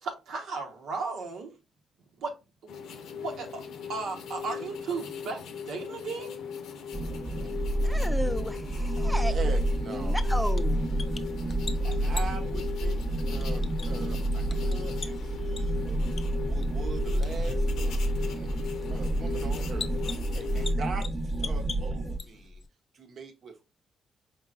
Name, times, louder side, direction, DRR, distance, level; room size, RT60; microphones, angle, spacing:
voice 1, 0.0-1.5 2.2-2.3 2.6-2.7 3.1-3.6 3.9-6.3, right 4 dB, 85° right, 1.1 m, -35 dB
sound 1, 2.7-20.7, left 7 dB, 85° left, 0.7 m, -39 dB
sound 2, 6.9-22.2, right 1 dB, 30° right, 0.8 m, -29 dB
voice 2, 7.8-9.3 9.9-10.8, equal, ahead, 0.4 m, -33 dB
voice 3, 9.2-10.3 11.8-16.1 16.4-18.5 18.9-19.9 20.3-21.1 21.4-22.6 22.9-23.6, right 4 dB, 60° right, 0.9 m, -41 dB
sound 3, 9.9-22.7, left 4 dB, 45° left, 0.6 m, -42 dB
4.7 x 3.7 x 2.4 m
cardioid pair, 85°, 0 cm